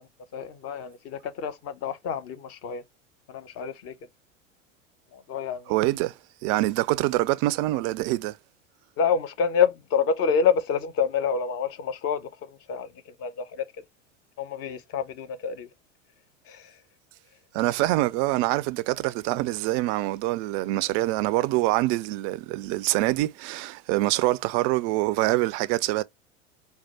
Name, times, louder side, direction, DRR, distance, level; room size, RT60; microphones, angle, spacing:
voice 1, 0.3-2.8 3.3-3.9 5.1-5.8 9.0-12.3 12.7-12.9 13.2-13.6 14.4-15.7 16.5-16.6, left 6 dB, 40° left, 0.8 m, -27 dB
voice 2, 5.7-6.1 6.4-8.4 17.5-26.0, right 18 dB, 35° right, 0.4 m, -25 dB
4.4 x 2.3 x 4.0 m
figure-of-eight pair, 80°, 38 cm